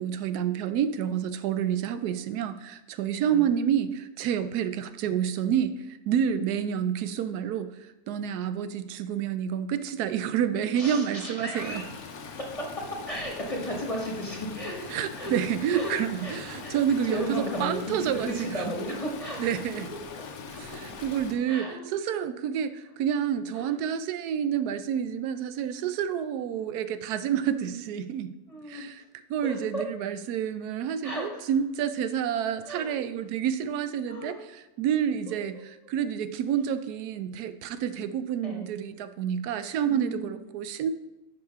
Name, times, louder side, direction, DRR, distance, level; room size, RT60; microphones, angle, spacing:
voice 1, 0.0-5.8 6.1-7.7 8.1-11.8 14.9-18.6 19.4-19.9 20.6-28.3 28.7-28.9 29.3-34.4 34.8-40.9, right 9 dB, 90° right, 11 dB, 1.1 m, -29 dB
voice 2, 10.7-11.9 12.4-15.5 15.7-15.9 16.2-19.6 20.1-20.2 20.5-20.6 21.5-21.8 23.5-23.7 27.2-27.8 28.5-28.9 29.4-29.8 31.0-31.5 32.6-33.0 34.1-34.4 35.3-35.6 38.4-38.7 39.8-40.4, equal, 25° left, -1 dB, 1.1 m, -35 dB
Stream, 11.6-21.3, left 5 dB, 70° left, 1.2 m, -42 dB
10.5 x 4.9 x 3.5 m, 0.99 s
omnidirectional pair, 1.6 m